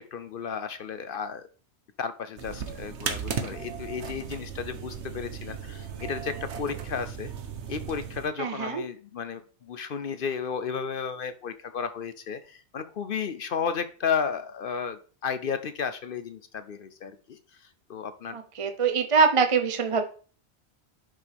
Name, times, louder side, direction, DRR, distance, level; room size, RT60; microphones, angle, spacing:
voice 1, 0.0-1.5 2.0-7.3 7.7-18.4, left 6 dB, 60° left, 11 dB, 0.8 m, -33 dB
sound 1, 2.4-8.3, right 7 dB, 85° right, 1.2 m, -36 dB
voice 2, 8.4-8.8 18.3-20.0, right 5 dB, 35° right, 7 dB, 0.7 m, -24 dB
10.5 x 5.5 x 3.4 m, 0.40 s
omnidirectional pair, 1.1 m